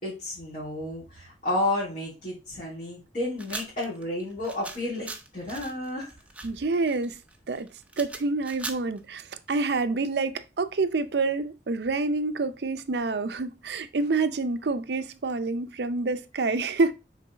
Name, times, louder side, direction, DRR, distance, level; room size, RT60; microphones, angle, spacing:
voice 1, 0.0-6.1, left 1 dB, 45° left, 3.2 m, -31 dB
sound 1, 3.4-9.7, right 2 dB, 10° right, 0.6 m, -40 dB
voice 2, 6.4-7.2 7.5-7.7 8.0-16.9, right 3 dB, 70° right, 0.5 m, -27 dB
6.1 x 4.1 x 4.0 m
head